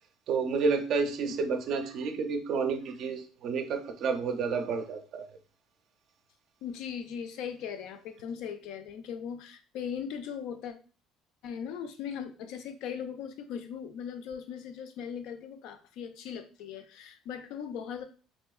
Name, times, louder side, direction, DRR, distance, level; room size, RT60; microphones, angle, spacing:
voice 1, 0.3-5.3, right 5 dB, 45° right, 6 dB, 0.5 m, -30 dB
voice 2, 6.6-10.7 11.4-18.0, left 7 dB, 70° left, 9 dB, 0.4 m, -39 dB
3.6 x 2.7 x 2.3 m, 0.38 s
cardioid pair, 165°, 0 cm